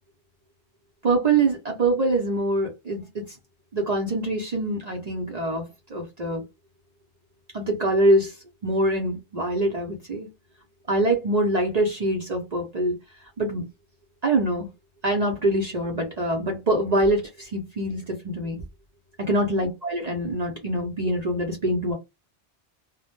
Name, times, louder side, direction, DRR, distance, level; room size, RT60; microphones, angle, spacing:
voice 1, 1.0-3.2 3.7-5.6 5.9-6.4 7.5-8.4 8.6-10.3 10.9-13.0 13.4-13.7 14.2-14.7 15.0-18.6 19.2-21.9, right 1 dB, 50° right, 0.6 m, -24 dB
2.1 x 2.0 x 2.9 m
omnidirectional pair, 1.1 m